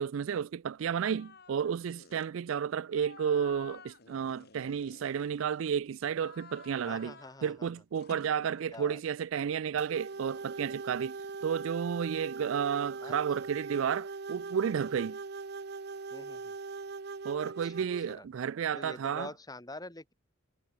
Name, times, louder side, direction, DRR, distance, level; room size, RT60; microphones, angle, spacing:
voice 1, 0.0-7.1 7.4-15.2 17.2-19.3, right 7 dB, 70° right, 0.4 m, -32 dB
sound 1, 1.0-1.6 1.9-2.3 2.9-5.7 6.1-7.5 7.9-9.0 10.1-11.9, left 5 dB, 50° left, 2.4 m, -54 dB
voice 2, 6.9-7.7 8.7-9.0 13.0-13.2 16.1-16.5 17.4-17.7 18.1-18.3 18.7-20.1, left 2 dB, 20° left, 4.1 m, -45 dB
sound 2, 9.8-18.2, right 4 dB, 55° right, 0.7 m, -41 dB
head